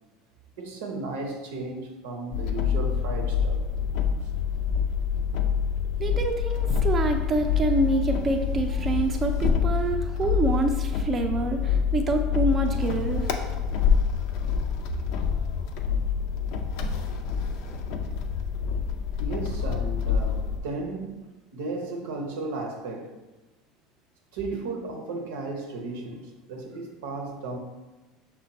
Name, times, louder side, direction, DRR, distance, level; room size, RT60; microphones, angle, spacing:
voice 1, 0.6-3.7 4.2-4.3 19.2-21.3 21.5-23.1 24.3-27.6, right 3 dB, 85° right, 0.7 m, -34 dB
sound 1, 2.3-20.6, left 6 dB, 70° left, 0.5 m, -26 dB
voice 2, 6.0-13.3, right 2 dB, 30° right, 0.5 m, -27 dB
5.6 x 2.2 x 4.0 m
supercardioid pair, 95°, 0 cm